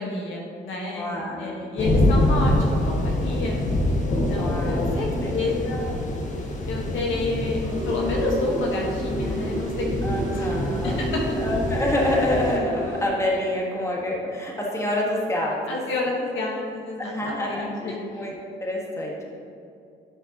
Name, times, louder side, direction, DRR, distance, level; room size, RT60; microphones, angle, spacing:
voice 1, 0.0-1.1 1.4-3.6 4.1-6.0 6.7-9.9 10.3-10.5 10.8-11.2 15.7-18.3, left 2 dB, 80° left, -1 dB, 1.3 m, -29 dB
voice 2, 1.0-1.6 2.5-3.2 4.4-4.8 5.2-5.7 10.0-11.0 11.3-15.8 17.0-18.3 18.6-19.3, left 1 dB, 15° left, -3 dB, 1.4 m, -27 dB
sound 1, 1.8-12.6, left 1 dB, 40° left, 1.2 m, -25 dB
sound 2, 7.6-13.1, right 2 dB, 85° right, 1.6 m, -31 dB
10.5 x 5.1 x 2.9 m, 2.5 s
cardioid pair, 90°, 20 cm